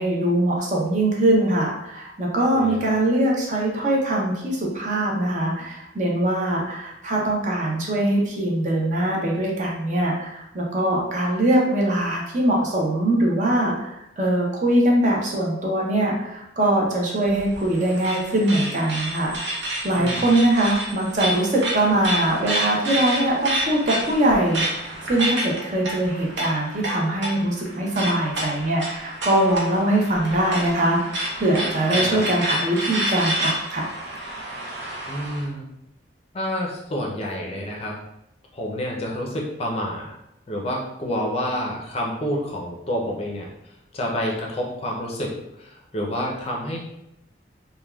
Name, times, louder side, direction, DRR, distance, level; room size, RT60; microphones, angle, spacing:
voice 1, 0.0-33.9, right 1 dB, 40° right, -2 dB, 0.5 m, -22 dB
voice 2, 2.5-2.9 20.0-20.2 31.9-32.2 35.1-35.7 36.3-37.9 38.5-40.2 40.5-46.8, equal, 35° left, -1 dB, 0.5 m, -29 dB
sound 1, 17.3-35.4, right 1 dB, 75° right, 0.7 m, -29 dB
3.3 x 2.2 x 2.2 m, 0.84 s
head